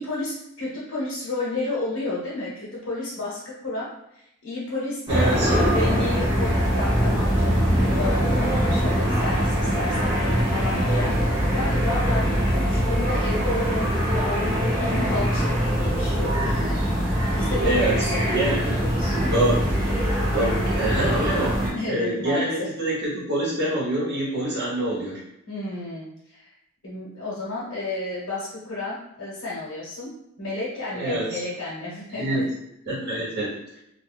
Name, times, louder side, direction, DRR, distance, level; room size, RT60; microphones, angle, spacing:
voice 1, 0.0-5.3 5.7-16.8 17.3-18.4 18.8-19.2 20.8-21.0 21.5-22.7 25.5-26.5 26.8-32.3 33.1-33.2, left 2 dB, 70° left, -6 dB, 0.8 m, -32 dB
sound 1, 5.1-21.7, equal, 20° right, 1.0 m, -22 dB
voice 2, 5.1-5.5 17.6-18.8 19.3-19.6 20.3-21.6 21.9-25.2 30.9-31.4 32.2-32.5 32.9-33.5, right 1 dB, 50° right, -6 dB, 1.0 m, -25 dB
2.2 x 2.1 x 3.2 m, 0.80 s
head